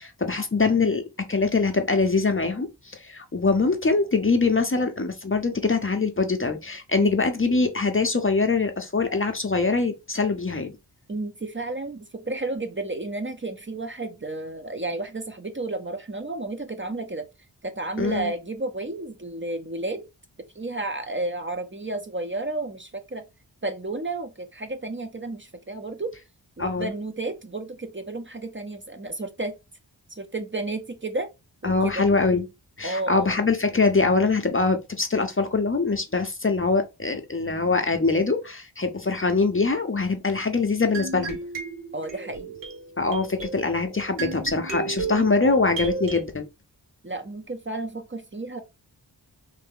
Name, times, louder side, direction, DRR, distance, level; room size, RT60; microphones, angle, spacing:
voice 1, 0.0-10.7 18.0-18.3 26.6-26.9 31.6-32.5 32.8-41.4 43.0-46.5, left 4 dB, 30° left, 0.6 m, -23 dB
voice 2, 11.1-17.3 17.6-20.1 20.6-23.2 23.6-26.1 26.6-29.5 30.1-31.3 31.6-32.1 32.8-33.4 41.9-42.6 47.0-48.6, right 2 dB, 25° right, 0.6 m, -32 dB
sound 1, 40.9-46.2, right 4 dB, 80° right, 1.2 m, -33 dB
3.3 x 2.6 x 3.6 m
wide cardioid pair, 60°, 43 cm